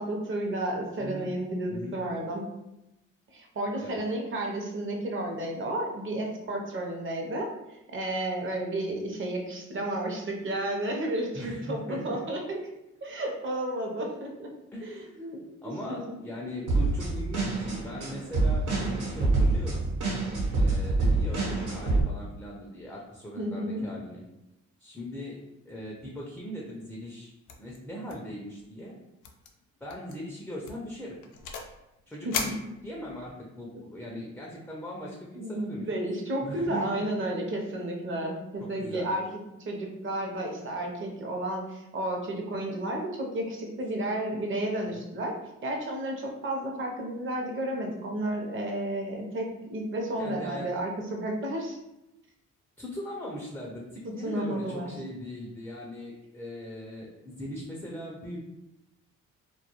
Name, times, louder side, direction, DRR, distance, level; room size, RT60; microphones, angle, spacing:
voice 1, 0.0-2.5 3.3-12.6 13.0-14.5 14.8-15.4 15.9-16.2 23.4-23.8 32.2-32.4 35.3-39.2 39.6-45.3 45.6-51.8 54.2-54.9, right 1 dB, 40° right, 1 dB, 0.6 m, -32 dB
voice 2, 1.0-1.3 1.7-2.0 3.8-4.0 11.3-12.2 14.7-15.3 15.6-19.9 20.5-24.2 24.8-27.3 27.6-28.9 29.8-31.2 32.1-32.6 32.8-35.9 36.4-37.2 38.6-39.2 45.0-45.1 50.2-50.7 52.8-58.4, equal, 5° left, -3 dB, 0.4 m, -40 dB
sound 1, 16.7-22.0, right 2 dB, 75° right, 1.0 m, -26 dB
sound 2, 27.5-27.8 28.1-28.3 28.6-28.7 29.2-29.5 29.9-30.1 30.6-31.8 32.3-33.3, left 5 dB, 80° left, 0.5 m, -36 dB
2.3 x 2.2 x 2.9 m, 0.92 s
cardioid pair, 90°, 30 cm